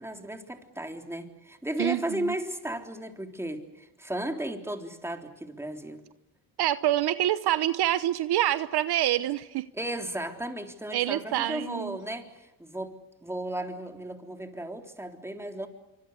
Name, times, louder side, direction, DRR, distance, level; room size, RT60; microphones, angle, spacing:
voice 1, 0.0-6.0 9.7-15.7, right 1 dB, 5° right, 4 dB, 3.6 m, -35 dB
voice 2, 1.8-2.3 6.6-9.7 10.9-12.0, right 13 dB, 70° right, 14 dB, 1.0 m, -26 dB
26.5 x 25.0 x 8.1 m, 0.93 s
cardioid pair, 90°, 40 cm